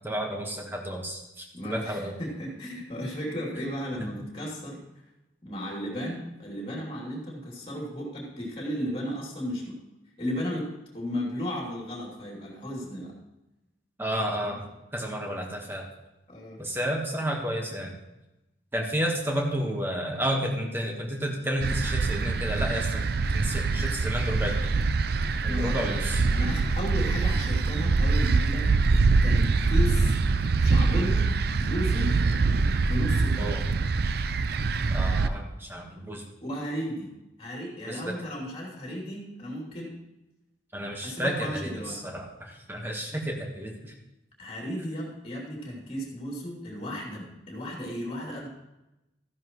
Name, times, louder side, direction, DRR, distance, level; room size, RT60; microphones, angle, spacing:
voice 1, 0.0-2.1 14.0-14.6 14.9-15.8 16.6-17.9 18.7-24.5 25.4-26.2 33.4-33.7 34.9-36.2 37.9-38.0 40.7-43.9, equal, 10° right, 1 dB, 1.4 m, -31 dB
voice 2, 1.5-4.8 5.4-9.8 10.2-10.7 10.9-13.1 16.3-16.6 25.5-28.7 29.2-30.1 30.6-31.3 31.6-32.1 32.8-33.5 36.4-37.1 37.4-39.9 41.0-42.0 44.4-48.5, equal, 30° left, -2 dB, 3.1 m, -34 dB
sound 1, 21.6-35.3, right 3 dB, 55° right, 0.4 m, -24 dB
14.0 x 10.5 x 3.1 m, 0.97 s
head